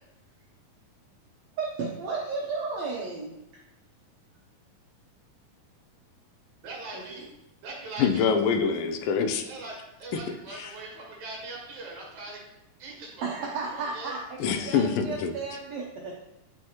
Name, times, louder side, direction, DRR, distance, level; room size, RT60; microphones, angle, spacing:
voice 1, 1.6-3.4 6.9-7.2 13.2-16.3, right 4 dB, 75° right, -2 dB, 1.6 m, -34 dB
voice 2, 6.6-7.3 7.6-8.3 9.4-12.4 12.8-13.3 13.7-14.2, right 2 dB, 60° right, -2 dB, 2.6 m, -41 dB
voice 3, 8.0-9.4 10.5-10.7 14.4-15.3, left 6 dB, 80° left, 6 dB, 2.2 m, -25 dB
9.8 x 4.9 x 2.9 m, 0.93 s
omnidirectional pair, 4.1 m